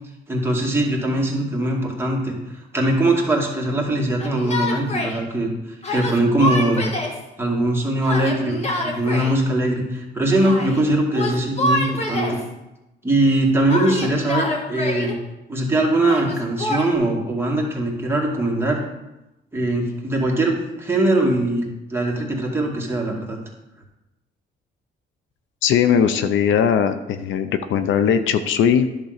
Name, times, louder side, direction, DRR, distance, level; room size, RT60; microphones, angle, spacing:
voice 1, 0.3-2.4 2.7-5.5 5.9-6.9 7.4-12.4 13.0-15.2 15.5-18.8 19.5-23.4, right 1 dB, 10° right, -2 dB, 2.3 m, -21 dB
Yell, 4.2-5.2 5.8-7.2 8.0-9.4 10.3-10.8 11.1-12.5 13.7-15.1 16.0-16.9, left 1 dB, 30° left, 1.7 m, -26 dB
voice 2, 25.6-28.9, left 8 dB, 80° left, 10 dB, 0.6 m, -19 dB
10.5 x 3.8 x 6.6 m, 0.98 s
cardioid pair, 90°, 20 cm